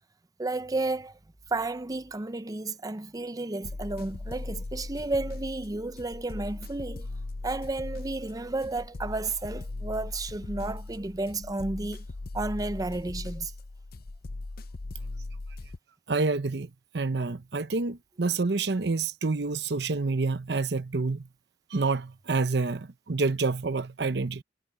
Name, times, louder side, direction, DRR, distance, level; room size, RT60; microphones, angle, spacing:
voice 1, 0.4-1.2 1.5-7.1 7.4-12.0 12.3-13.5, right 2 dB, 20° right, 0.6 m, -32 dB
sound 1, 3.6-15.8, left 2 dB, 55° left, 0.7 m, -39 dB
voice 2, 16.1-21.3 21.7-24.4, right 3 dB, 65° right, 0.8 m, -28 dB
head